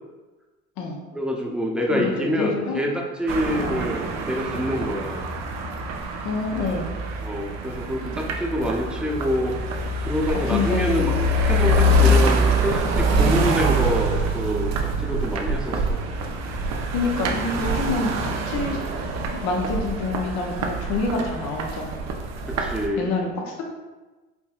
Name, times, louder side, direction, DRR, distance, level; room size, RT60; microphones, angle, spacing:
voice 1, 1.1-5.2 7.2-9.5 10.0-11.1 11.4-14.7 15.0-16.0 22.5-23.1, equal, 5° right, -1 dB, 0.7 m, -26 dB
voice 2, 1.9-2.8 3.6-3.9 6.2-6.9 8.0-8.1 10.4-11.0 11.8-12.0 16.9-18.2 18.5-18.8 19.4-22.0 23.0-23.6, left 3 dB, 65° left, 0 dB, 0.7 m, -27 dB
sound 1, 3.3-22.9, equal, 55° right, 0.6 m, -25 dB
4.7 x 2.7 x 2.4 m, 1.2 s
hypercardioid pair, 70°, 31 cm